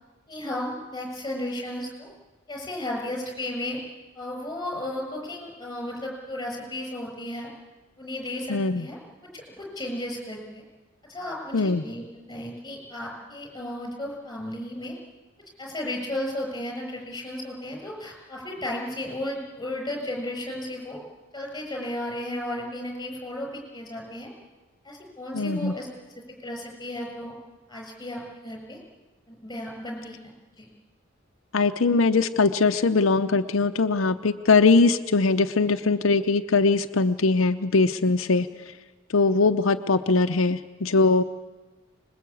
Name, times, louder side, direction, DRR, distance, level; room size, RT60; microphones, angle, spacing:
voice 1, 0.3-2.1 2.5-3.8 4.1-7.5 8.0-9.0 9.3-10.6 11.1-14.9 15.6-21.0 21.3-24.3 24.8-25.9 26.4-27.3 27.7-28.8 29.3-30.2 30.6-30.7, left 1 dB, 20° left, 0 dB, 6.7 m, -34 dB
voice 2, 8.5-8.9 11.5-11.8 25.3-25.7 31.5-38.5 39.1-41.2, left 3 dB, 75° left, 6 dB, 0.7 m, -21 dB
25.5 x 21.0 x 8.5 m, 1.2 s
head